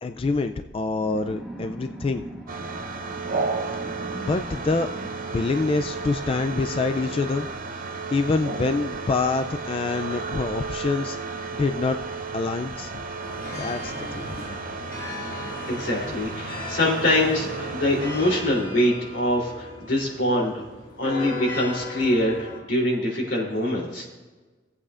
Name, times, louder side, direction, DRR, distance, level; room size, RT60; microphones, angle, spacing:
voice 1, 0.0-2.2 4.2-7.5 8.1-12.0 12.3-12.9 13.5-14.4, left 3 dB, 30° left, 7 dB, 0.3 m, -26 dB
sound 1, 0.9-9.1, right 1 dB, 5° right, 1.4 m, -42 dB
sound 2, 2.5-18.4, right 4 dB, 50° right, 0.7 m, -33 dB
sound 3, 13.2-22.6, left 1 dB, 55° left, 1.9 m, -37 dB
voice 2, 15.7-20.7 21.0-24.1, left 1 dB, 90° left, -3 dB, 3.2 m, -24 dB
17.5 x 8.4 x 2.5 m, 1.3 s
head